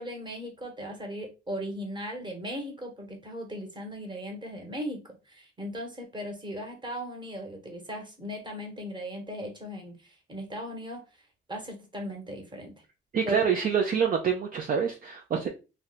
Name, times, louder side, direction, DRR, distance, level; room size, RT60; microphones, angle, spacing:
voice 1, 0.0-11.0 11.5-12.7 13.3-13.7, equal, 25° right, 1 dB, 1.3 m, -38 dB
voice 2, 13.1-15.5, right 7 dB, 45° right, 2 dB, 0.6 m, -26 dB
2.6 x 2.3 x 4.1 m, 0.29 s
cardioid pair, 90°, 20 cm